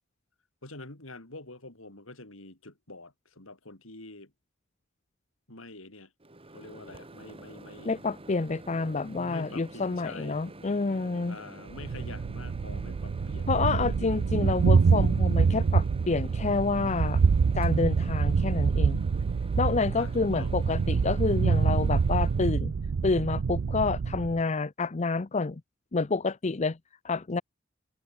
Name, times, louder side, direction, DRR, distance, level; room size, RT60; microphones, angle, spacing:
voice 1, 0.6-4.3 5.5-6.1 6.5-8.0 9.0-10.4 11.3-13.9 20.0-20.6, left 2 dB, 80° left, 4.7 m, -46 dB
Microwave oven, 6.2-22.5, right 2 dB, 30° right, 2.1 m, -48 dB
voice 2, 7.8-11.4 13.5-17.2 17.5-19.0 19.6-22.7 23.0-25.6 25.9-26.8 27.0-27.4, left 4 dB, 35° left, 0.6 m, -28 dB
Thunder, 11.7-24.4, right 5 dB, 70° right, 0.4 m, -26 dB
head